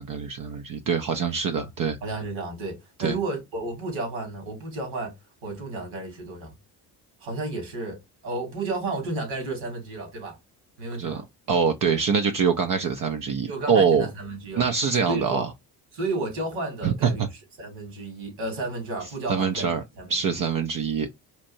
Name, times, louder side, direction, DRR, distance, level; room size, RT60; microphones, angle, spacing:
voice 1, 0.0-2.0 3.0-3.2 11.0-11.2 11.5-14.1 14.6-15.4 16.8-17.1 19.3-19.8 20.1-21.1, right 6 dB, 40° right, 0.6 m, -24 dB
voice 2, 2.0-5.1 5.4-6.5 7.2-8.0 8.2-10.4 10.8-11.3 13.5-14.7 15.1-15.5 15.9-17.3 17.6-20.4, right 2 dB, 75° right, 2.5 m, -32 dB
4.3 x 2.5 x 2.6 m
hypercardioid pair, 55°, 49 cm